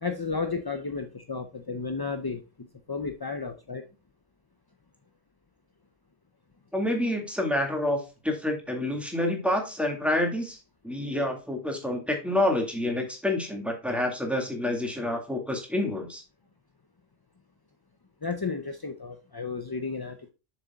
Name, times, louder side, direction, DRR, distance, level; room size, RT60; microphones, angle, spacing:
voice 1, 0.0-3.8 18.2-20.3, left 4 dB, 35° left, 6 dB, 0.4 m, -33 dB
voice 2, 6.7-10.6 10.8-16.2, left 1 dB, ahead, 2 dB, 1.9 m, -28 dB
7.2 x 6.8 x 2.3 m, 0.31 s
omnidirectional pair, 1.3 m